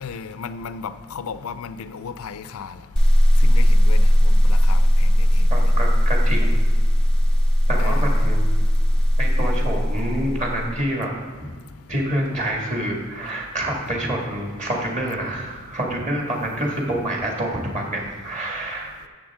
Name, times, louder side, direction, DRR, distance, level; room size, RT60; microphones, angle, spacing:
voice 1, 0.0-2.7 3.4-5.5 7.8-8.2, left 5 dB, 90° left, 12 dB, 0.5 m, -35 dB
sound 1, 3.0-10.8, equal, 5° left, 0.8 m, -17 dB
voice 2, 5.5-6.5 7.7-8.4 9.2-11.1 11.4-11.5 11.9-18.9, right 1 dB, 35° right, -1 dB, 1.9 m, -27 dB
13.5 x 7.6 x 3.7 m, 1.5 s
head